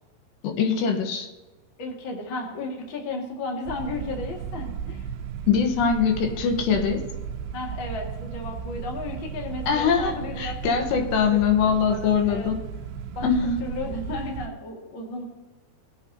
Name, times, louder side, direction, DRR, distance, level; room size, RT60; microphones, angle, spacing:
voice 1, 0.4-1.3 5.5-7.0 9.7-12.6 13.2-13.7, left 6 dB, 80° left, 3 dB, 3.3 m, -22 dB
voice 2, 1.8-5.1 7.5-11.4 11.7-12.5 13.2-13.3 13.6-15.2, left 2 dB, 40° left, 0 dB, 1.9 m, -34 dB
sound 1, 3.7-14.5, right 7 dB, 80° right, 2.4 m, -35 dB
20.5 x 8.1 x 2.8 m, 1.2 s
omnidirectional pair, 4.9 m